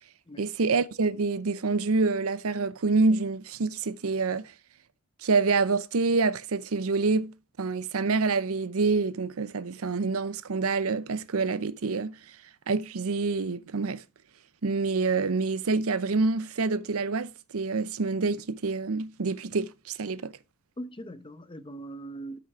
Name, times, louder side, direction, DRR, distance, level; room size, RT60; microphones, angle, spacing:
voice 1, 0.4-4.5 5.2-12.2 12.7-14.0 14.6-20.3, right 4 dB, 75° right, 0.7 m, -27 dB
voice 2, 20.8-22.4, right 1 dB, 25° left, 0.8 m, -40 dB
12.5 x 5.8 x 4.8 m
head